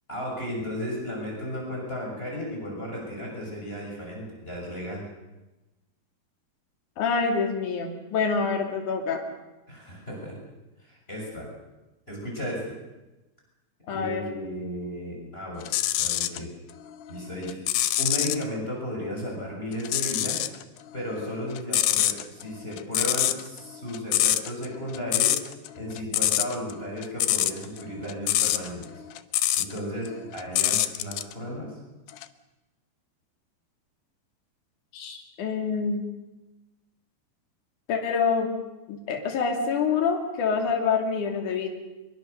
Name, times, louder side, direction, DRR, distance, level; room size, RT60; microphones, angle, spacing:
voice 1, 0.1-5.0 9.7-10.4 10.8-11.5 12.1-12.6 13.9-15.7 16.0-16.5 17.1-17.6 18.0-20.4 20.9-25.3 25.7-29.0 29.5-31.8, equal, 15° left, -2 dB, 6.7 m, -34 dB
voice 2, 7.0-9.2 13.9-14.2 34.9-36.0 37.9-38.5 38.9-41.7, left 5 dB, 55° left, 2 dB, 3.9 m, -26 dB
sound 1, 15.6-16.4 16.8-18.4 19.8-20.6 20.9-29.8 30.1-31.3 32.1-32.2, left 14 dB, 75° left, 2.0 m, -25 dB
24.0 x 23.0 x 6.8 m, 1.1 s
omnidirectional pair, 4.6 m